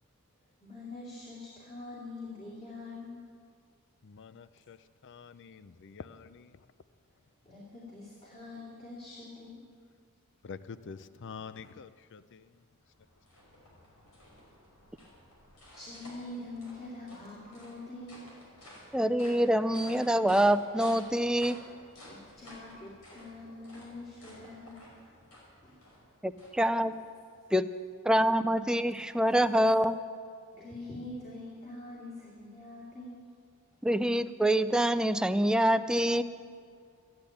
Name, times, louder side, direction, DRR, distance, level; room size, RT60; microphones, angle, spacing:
voice 1, 0.6-3.2 7.5-9.6 15.7-18.2 22.0-25.1 25.6-25.8 26.8-26.9 28.8-28.9 30.5-33.2, left 2 dB, 30° left, -6 dB, 2.5 m, -44 dB
voice 2, 4.0-4.8 5.0-6.7 10.4-12.6, left 5 dB, 55° left, 14 dB, 0.5 m, -46 dB
sound 1, 12.6-27.0, left 1 dB, 80° left, 5.3 m, -53 dB
voice 3, 18.9-21.6 26.2-26.9 27.5-27.7 28.0-30.0 33.8-36.2, right 1 dB, 5° right, 11 dB, 0.4 m, -25 dB
14.0 x 10.5 x 8.7 m, 2.2 s
head